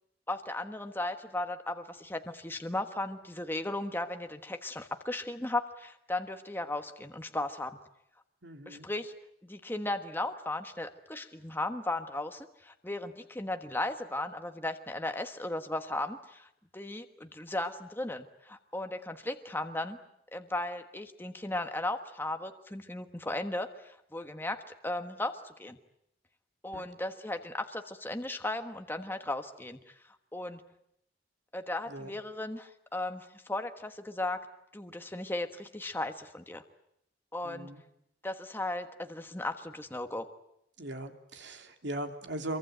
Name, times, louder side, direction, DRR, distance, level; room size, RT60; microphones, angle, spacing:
voice 1, 0.3-7.8 8.7-9.1 9.4-20.0 20.3-25.8 26.6-29.9 30.3-30.6 31.5-34.4 34.7-36.6 37.3-37.7 38.2-40.3, left 2 dB, 10° left, 7 dB, 1.3 m, -36 dB
voice 2, 8.4-8.9 26.7-26.8 31.9-32.1 37.4-37.8 40.8-42.6, right 1 dB, 65° right, 5 dB, 3.0 m, -39 dB
26.0 x 23.5 x 9.1 m, 0.78 s
head